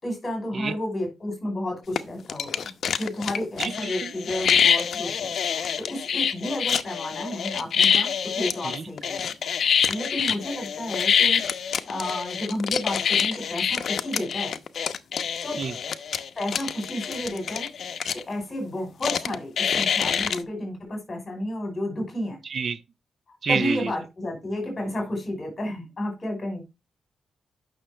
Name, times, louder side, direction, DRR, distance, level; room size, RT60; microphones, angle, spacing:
voice 1, 0.0-2.7 3.0-9.3 9.9-11.4 11.9-14.6 15.4-15.6 16.4-17.7 18.1-22.4 23.5-26.6, left 1 dB, 30° left, 5.3 m, -31 dB
sound 1, 2.0-2.1 2.3-18.2 19.0-20.4, left 7 dB, 60° left, 0.8 m, -26 dB
voice 2, 3.6-3.9 8.7-8.8 15.6-15.7 22.5-22.8 23.4-23.9, right 5 dB, 45° right, 0.5 m, -27 dB
8.7 x 6.3 x 4.3 m
wide cardioid pair, 140°, 0 cm